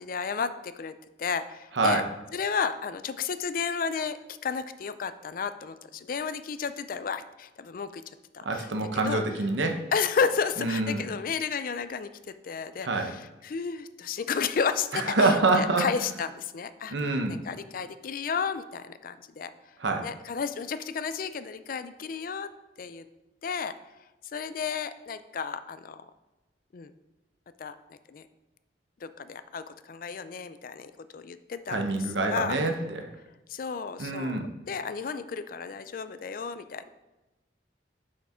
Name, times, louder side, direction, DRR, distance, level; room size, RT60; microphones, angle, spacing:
voice 1, 0.0-2.0 2.3-8.0 8.3-8.7 9.0-9.2 9.9-16.9 17.3-19.5 20.0-22.5 22.8-23.0 23.4-23.7 24.3-26.1 26.7-26.9 27.6-28.2 29.0-32.0 32.3-32.6 33.5-34.4 34.7-36.9, left 6 dB, 50° left, 12 dB, 0.4 m, -32 dB
voice 2, 8.4-9.8 10.6-11.0 12.8-13.1 15.1-15.8 16.9-17.4 19.8-20.1 31.7-33.0 34.0-34.5, right 3 dB, 80° right, 4 dB, 0.9 m, -26 dB
6.5 x 5.8 x 4.3 m, 1.0 s
head